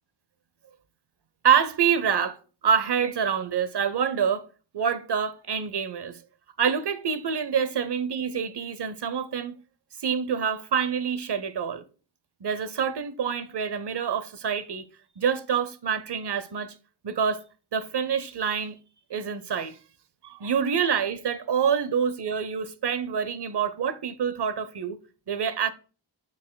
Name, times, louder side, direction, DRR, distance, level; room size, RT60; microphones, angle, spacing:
voice 1, 1.4-2.4 2.6-4.4 4.7-6.2 6.6-9.6 10.0-11.8 12.4-14.9 15.2-16.7 17.0-17.4 17.7-18.8 19.1-19.8 20.2-25.0 25.3-25.7, right 7 dB, 55° right, 0.8 m, -26 dB
7.1 x 6.5 x 2.2 m
wide cardioid pair, 50°, 47 cm